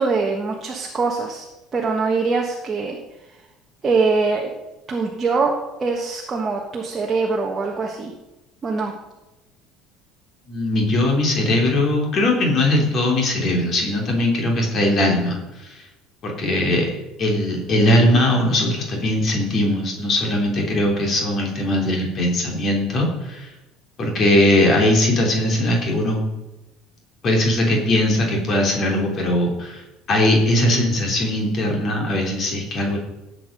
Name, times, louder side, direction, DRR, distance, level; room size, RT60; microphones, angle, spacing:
voice 1, 0.0-1.5 1.7-3.0 3.2-3.4 3.8-4.5 4.9-8.1 8.6-8.9, right 4 dB, 20° right, 0 dB, 1.3 m, -23 dB
voice 2, 10.5-15.8 16.2-16.9 17.2-23.5 24.0-26.2 27.2-29.8 30.1-33.0, left 1 dB, 30° left, 0 dB, 3.3 m, -20 dB
18.0 x 8.1 x 5.4 m, 1.0 s
cardioid pair, 170°, 0 cm